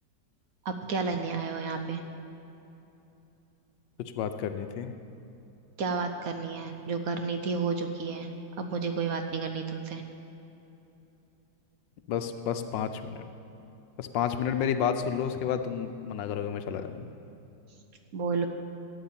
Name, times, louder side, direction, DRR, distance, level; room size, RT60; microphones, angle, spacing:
voice 1, 0.6-2.0 5.8-8.3 8.6-10.0 18.1-18.5, right 4 dB, 60° right, 6 dB, 1.1 m, -31 dB
voice 2, 4.0-4.9 12.1-13.3 14.0-17.1, left 8 dB, 85° left, 8 dB, 1.4 m, -31 dB
12.0 x 8.6 x 7.3 m, 3.0 s
omnidirectional pair, 1.9 m